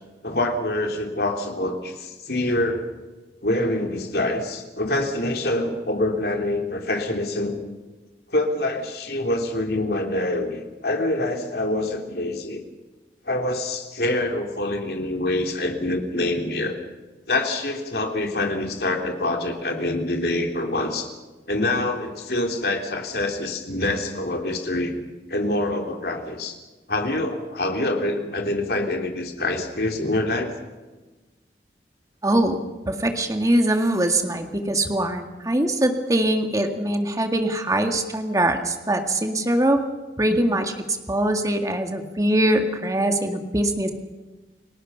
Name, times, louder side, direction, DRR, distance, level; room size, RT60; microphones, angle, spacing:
voice 1, 0.2-2.8 3.4-7.6 8.3-12.6 13.2-16.8 17.3-21.1 21.5-24.9 25.3-26.5 26.9-30.5, left 2 dB, 60° left, 3 dB, 3.3 m, -25 dB
voice 2, 32.2-39.9 40.2-43.9, right 1 dB, 20° right, 5 dB, 1.9 m, -22 dB
30.0 x 18.5 x 5.7 m, 1.2 s
head